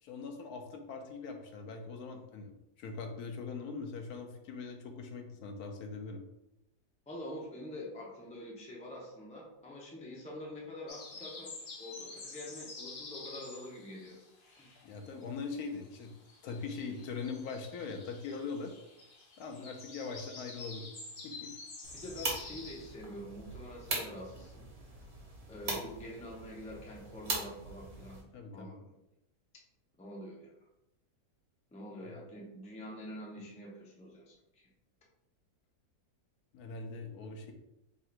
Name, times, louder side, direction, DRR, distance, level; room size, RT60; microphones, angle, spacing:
voice 1, 0.0-6.2 14.8-16.1 16.4-18.8 19.4-20.9 21.2-21.5 28.3-28.8 32.0-32.2 36.5-37.5, left 4 dB, 75° left, 4 dB, 1.1 m, -41 dB
voice 2, 7.1-14.2 14.6-14.7 19.5-19.8 21.9-24.7 25.5-28.2 28.5-28.9 30.0-30.5 31.7-34.6, left 1 dB, 10° left, -3 dB, 0.4 m, -46 dB
sound 1, 10.9-15.2 15.5-22.9, left 3 dB, 45° left, 0.7 m, -49 dB
sound 2, 21.8-28.2, right 2 dB, 65° right, 1.6 m, -41 dB
3.7 x 2.5 x 4.4 m, 0.88 s
omnidirectional pair, 1.6 m